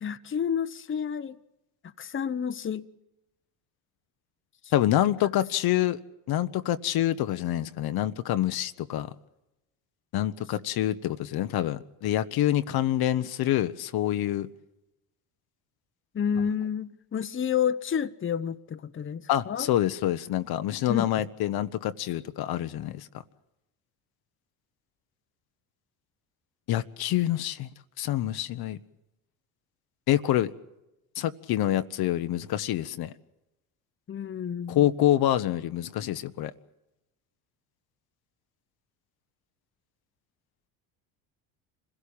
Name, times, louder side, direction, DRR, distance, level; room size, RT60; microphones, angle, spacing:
voice 1, 0.0-1.4 2.0-2.9 16.1-19.7 20.9-21.1 34.1-34.9, left 8 dB, 25° left, 1.0 m, -30 dB
voice 2, 4.7-6.0 6.3-9.1 10.1-14.5 19.3-23.1 26.7-27.7 28.0-28.8 30.1-30.5 31.2-33.1 34.7-36.5, left 13 dB, 55° left, 1.0 m, -26 dB
25.5 x 17.0 x 8.6 m
supercardioid pair, 80°, 44 cm